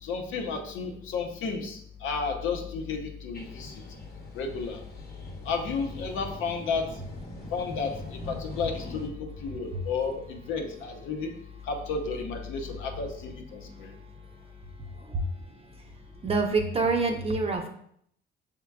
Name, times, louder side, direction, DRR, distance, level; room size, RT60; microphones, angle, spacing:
voice 1, 0.0-3.8 4.3-4.8 5.4-6.9 7.5-11.3 11.6-13.9, left 5 dB, 85° left, 2 dB, 0.8 m, -32 dB
sound 1, 3.3-9.1, left 2 dB, 50° left, 1.0 m, -42 dB
voice 2, 14.8-15.3 16.2-17.7, right 3 dB, 30° right, 4 dB, 0.7 m, -27 dB
5.9 x 3.7 x 2.3 m, 0.68 s
cardioid pair, 90°, 20 cm